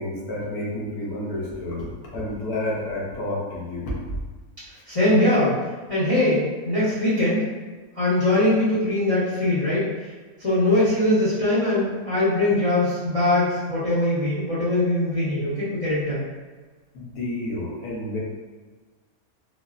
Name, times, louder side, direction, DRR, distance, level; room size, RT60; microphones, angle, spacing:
voice 1, 0.0-4.2 4.7-4.8 16.9-18.2, left 1 dB, 75° left, -5 dB, 1.3 m, -30 dB
voice 2, 4.9-5.6 5.9-7.4 7.9-9.9 10.4-16.2, left 1 dB, 30° left, -11 dB, 0.7 m, -21 dB
3.8 x 2.0 x 2.4 m, 1.4 s
omnidirectional pair, 1.6 m